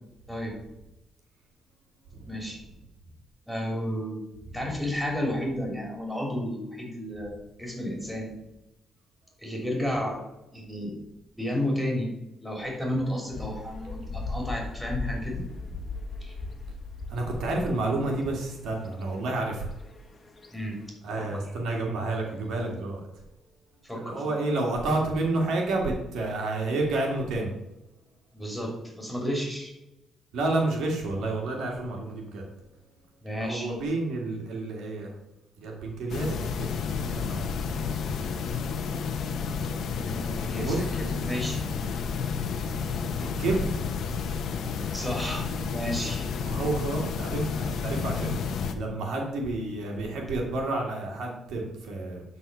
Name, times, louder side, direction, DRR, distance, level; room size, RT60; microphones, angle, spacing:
voice 1, 2.3-2.6 3.5-4.2 4.5-8.3 9.4-10.2 10.5-11.0 11.4-12.1 12.4-15.4 16.2-16.3 20.5-20.8 21.2-21.4 23.8-24.3 28.3-29.7 33.2-33.7 40.0-41.6 44.9-46.3, equal, ahead, 0 dB, 3.2 m, -32 dB
sound 1, 13.3-20.9, left 3 dB, 30° left, 1.4 m, -38 dB
voice 2, 17.1-19.7 21.0-23.0 23.9-27.5 30.3-32.4 33.4-35.1 35.6-37.8 40.6-41.1 43.2-43.7 46.4-48.3 48.7-52.2, right 2 dB, 80° right, 0 dB, 2.2 m, -30 dB
sound 2, 36.1-48.7, left 5 dB, 70° left, 1.0 m, -31 dB
11.5 x 4.3 x 5.5 m, 0.95 s
cardioid pair, 90°, 0 cm